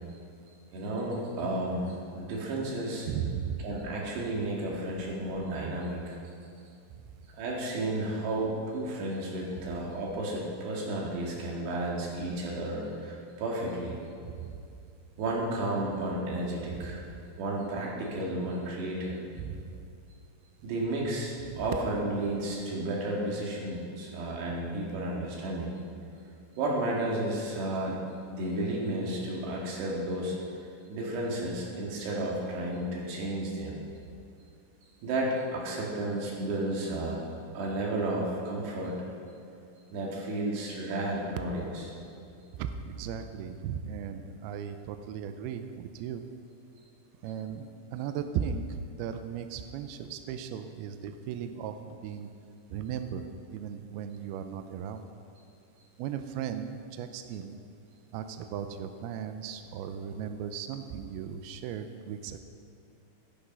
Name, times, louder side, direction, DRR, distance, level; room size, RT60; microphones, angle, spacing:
voice 1, 0.7-3.1 3.6-6.2 7.3-14.0 15.2-17.1 17.4-19.2 20.6-25.7 26.6-28.0 28.3-30.4 30.9-33.8 35.0-37.2 37.5-39.0 39.9-41.6, right 1 dB, 70° right, -3 dB, 4.2 m, -32 dB
voice 2, 3.1-3.7 14.4-14.6 16.7-16.9 19.4-19.7 21.5-21.7 42.6-46.3 47.2-52.3 52.7-53.3 53.5-55.0 56.0-57.6 58.1-62.4, right 8 dB, 90° right, 8 dB, 2.3 m, -37 dB
16.0 x 8.9 x 5.5 m, 2.5 s
omnidirectional pair, 5.2 m